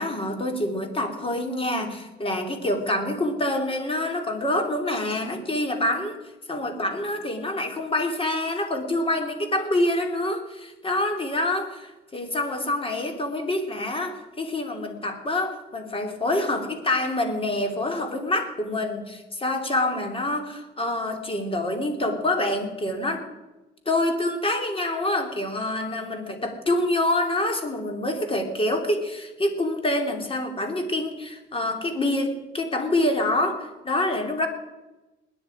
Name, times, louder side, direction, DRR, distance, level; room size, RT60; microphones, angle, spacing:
voice 1, 0.0-6.1 6.5-23.3 23.8-34.5, left 1 dB, 25° left, 4 dB, 3.0 m, -26 dB
21.0 x 10.0 x 5.0 m, 1.1 s
cardioid pair, 90°, 20 cm